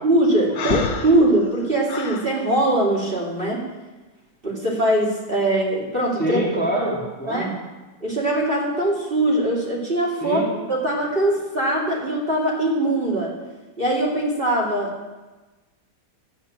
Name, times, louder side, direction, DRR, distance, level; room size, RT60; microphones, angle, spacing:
voice 1, 0.0-3.6 4.4-6.4 7.2-7.5 8.0-10.4 10.7-13.3 13.8-14.9, right 1 dB, 30° right, -4 dB, 3.1 m, -21 dB
Breathing, 0.5-2.3, left 5 dB, 60° left, 1.4 m, -28 dB
voice 2, 6.2-7.5 10.2-10.5, right 1 dB, 5° left, -4 dB, 2.8 m, -25 dB
12.0 x 9.2 x 8.7 m, 1.2 s
omnidirectional pair, 2.0 m